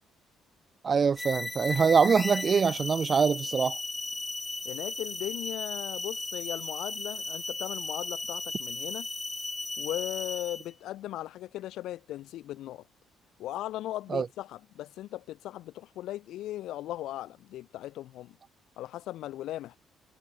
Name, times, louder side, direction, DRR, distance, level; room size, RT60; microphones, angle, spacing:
voice 1, 0.8-3.8 14.1-14.3, right 6 dB, 25° right, 0.4 m, -24 dB
sound 1, 1.2-10.7, left 2 dB, 10° left, 1.0 m, -36 dB
voice 2, 4.6-9.1 9.8-12.8 13.4-18.4 18.8-19.8, left 14 dB, 65° left, 2.7 m, -38 dB
cardioid pair, 175°, 0 cm